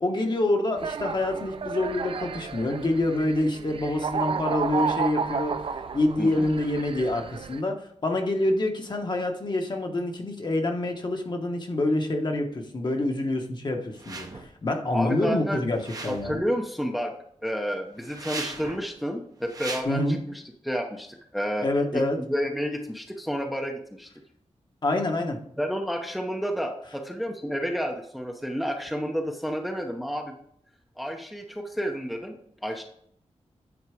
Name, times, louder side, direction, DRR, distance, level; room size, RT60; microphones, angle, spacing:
voice 1, 0.0-5.6 5.9-16.4 19.8-20.2 21.6-22.2 24.8-25.4, left 2 dB, 40° left, 3 dB, 1.1 m, -26 dB
sound 1, 0.8-7.6, right 6 dB, 50° right, 0.5 m, -32 dB
voice 2, 6.2-6.5 14.9-15.6 16.1-17.1 17.4-21.7 21.9-24.1 25.6-30.3 31.0-32.4 32.6-32.8, equal, ahead, 2 dB, 0.7 m, -30 dB
sound 2, 14.0-14.5 15.7-16.5 18.0-18.9 19.4-19.8, right 3 dB, 30° right, 0.9 m, -37 dB
9.8 x 3.9 x 4.9 m, 0.69 s
wide cardioid pair, 145°, 12 cm